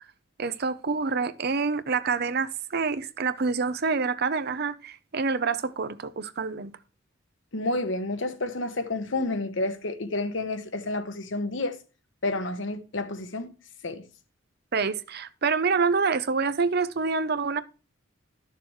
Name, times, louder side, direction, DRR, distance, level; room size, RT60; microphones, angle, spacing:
voice 1, 0.4-6.7 14.7-17.6, right 4 dB, 55° right, 0.7 m, -27 dB
voice 2, 7.5-11.8 12.2-13.5 13.8-14.0, left 2 dB, 65° left, 1.2 m, -30 dB
13.0 x 6.7 x 3.2 m
head